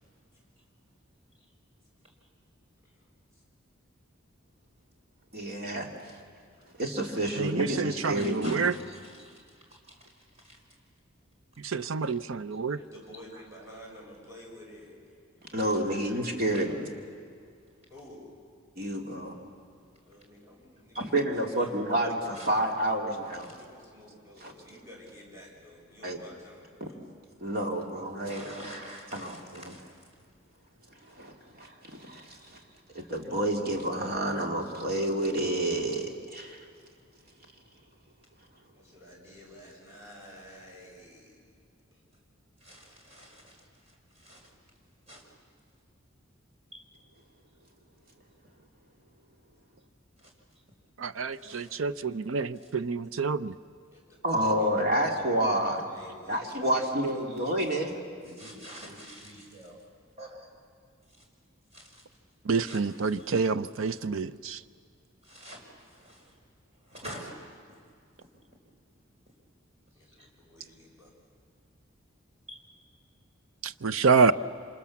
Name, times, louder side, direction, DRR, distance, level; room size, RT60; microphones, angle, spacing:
voice 1, 5.3-6.2 6.8-8.5 15.5-16.9 18.8-19.4 21.0-23.5 24.4-24.5 26.0-26.2 26.8-26.9 27.4-28.8 29.1-29.7 31.1-32.6 32.9-36.7 54.2-55.8 56.3-58.0, right 1 dB, 50° right, 1 dB, 2.7 m, -29 dB
voice 2, 7.4-8.7 11.6-12.8 51.0-53.5 62.5-64.6 73.6-74.3, right 5 dB, 80° right, 15 dB, 0.6 m, -27 dB
voice 3, 8.1-10.6 11.8-11.9 13.3-13.4 15.8-16.0 16.5-16.7 20.9-21.0 21.6-21.7 22.3-22.6 28.3-30.0 42.6-44.5 45.1-45.3 46.7-46.8 50.2-50.3 51.2-52.1 52.5-52.7 57.3-57.6 58.2-59.8 60.2-60.5 61.1-61.2 61.7-62.0 62.6-63.5 63.8-64.2 65.2-66.4 66.7-67.5 68.2-68.3 70.1-70.3 72.5-72.6, equal, 30° right, -1 dB, 5.0 m, -48 dB
voice 4, 12.8-15.0 17.9-18.2 20.0-21.1 21.5-22.3 23.5-27.0 38.7-41.4 41.9-42.0 53.9-54.7 55.1-55.6 55.8-57.2 69.9-71.1, equal, 15° right, -4 dB, 6.7 m, -51 dB
27.0 x 26.5 x 7.2 m, 2.2 s
head